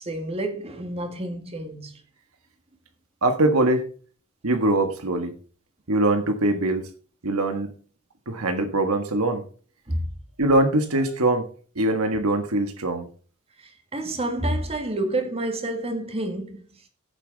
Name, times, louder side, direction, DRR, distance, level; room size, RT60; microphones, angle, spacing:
voice 1, 0.0-2.0 9.9-10.0 13.6-16.6, right 1 dB, 30° right, 2.0 m, -29 dB
voice 2, 3.2-3.8 4.4-5.3 5.9-6.9 7.2-7.7 8.3-9.4 10.4-11.4 11.7-13.1, right 2 dB, 85° right, 1.5 m, -22 dB
14.5 x 7.3 x 4.0 m
head